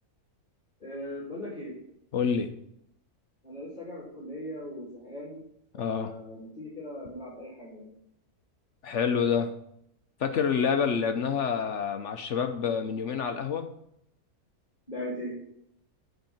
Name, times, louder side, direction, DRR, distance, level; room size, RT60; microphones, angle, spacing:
voice 1, 0.8-1.8 3.4-5.5 5.8-7.9 14.9-15.4, left 1 dB, 30° left, -7 dB, 2.6 m, -39 dB
voice 2, 2.1-2.5 5.8-6.1 8.8-9.5 10.2-13.7, left 6 dB, 60° left, 7 dB, 0.9 m, -27 dB
7.9 x 4.5 x 7.2 m, 0.74 s
omnidirectional pair, 1.6 m